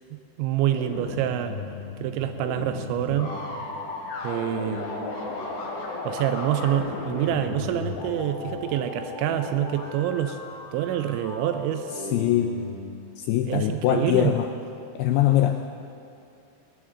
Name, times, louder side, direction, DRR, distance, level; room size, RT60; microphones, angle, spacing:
voice 1, 0.1-1.6 2.0-3.3 4.2-4.9 6.1-10.4 10.7-12.1 13.5-14.3, right 11 dB, 85° right, 8 dB, 3.0 m, -27 dB
sound 1, 0.7-12.8, left 2 dB, 65° left, 4.4 m, -35 dB
voice 2, 12.1-12.5 13.2-14.5 15.0-15.7, left 12 dB, 90° left, 5 dB, 2.3 m, -22 dB
21.5 x 17.0 x 3.8 m, 2.5 s
omnidirectional pair, 5.3 m